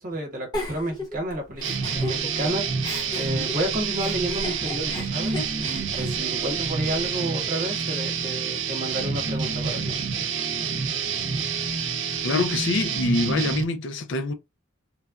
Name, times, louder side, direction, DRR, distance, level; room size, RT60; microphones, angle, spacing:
voice 1, 0.0-10.0, right 1 dB, 40° right, 1.1 m, -31 dB
Giggle, 0.5-2.5 2.8-7.0, left 2 dB, 20° left, 0.6 m, -35 dB
sound 1, 1.6-13.6, right 6 dB, 65° right, 0.6 m, -28 dB
voice 2, 12.2-14.3, left 3 dB, 65° left, 0.4 m, -25 dB
3.1 x 2.2 x 2.3 m
head